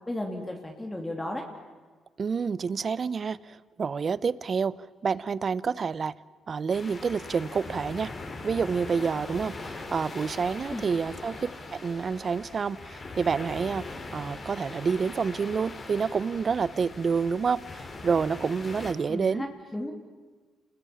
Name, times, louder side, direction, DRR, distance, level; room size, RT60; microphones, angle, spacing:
voice 1, 0.1-1.4 10.7-10.8 19.1-19.9, left 1 dB, 15° left, 2 dB, 3.0 m, -34 dB
voice 2, 2.2-6.1 6.5-8.1 8.4-13.8 14.1-19.5, right 5 dB, 40° right, 19 dB, 0.8 m, -28 dB
sound 1, 6.7-18.9, left 3 dB, 35° left, 4.2 m, -41 dB
28.5 x 20.5 x 8.7 m, 1.4 s
cardioid pair, 90°, 0 cm